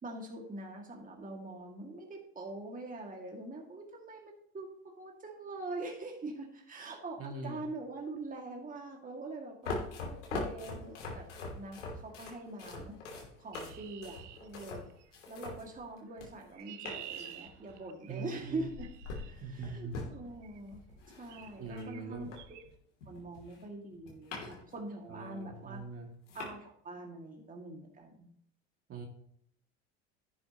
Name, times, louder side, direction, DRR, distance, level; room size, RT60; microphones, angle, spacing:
voice 1, 0.0-4.7 5.0-11.3 11.5-12.9 13.4-14.8 15.3-18.9 19.2-20.8 21.1-22.3 23.1-25.8 26.3-28.3, right 2 dB, 25° right, 1 dB, 2.2 m, -43 dB
voice 2, 7.2-7.6 18.1-18.7 19.4-20.0 21.6-22.3 25.0-26.1 28.9-29.1, right 3 dB, 40° right, 2 dB, 2.3 m, -42 dB
sound 1, 9.6-16.5 16.9-17.8 18.5-22.7 23.0-24.8 25.1-25.2 25.8-25.9 26.3-26.5, left 3 dB, 85° left, 2.9 m, -43 dB
Chirp tweet, 13.5-15.2 16.2-19.3 20.4-20.7 21.3-21.6 21.8-22.0 22.4-22.6, right 12 dB, 80° right, 0.9 m, -50 dB
10.5 x 9.2 x 3.0 m, 0.66 s
hypercardioid pair, 80°, 35 cm